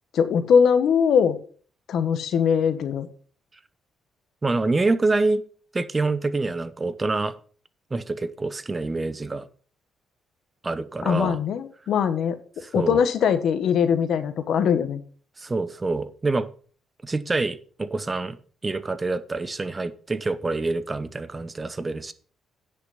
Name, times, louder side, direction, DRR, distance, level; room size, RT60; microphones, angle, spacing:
voice 1, 0.1-1.4 1.9-3.1 11.0-12.4 12.7-15.0, left 7 dB, 70° left, 1.2 m, -21 dB
voice 2, 4.4-5.4 5.7-7.3 7.9-9.5 10.6-11.4 12.6-13.0 15.4-16.5 17.0-18.4 18.6-22.1, right 3 dB, 25° right, 0.8 m, -26 dB
9.7 x 6.1 x 5.6 m
cardioid pair, 90°, 0 cm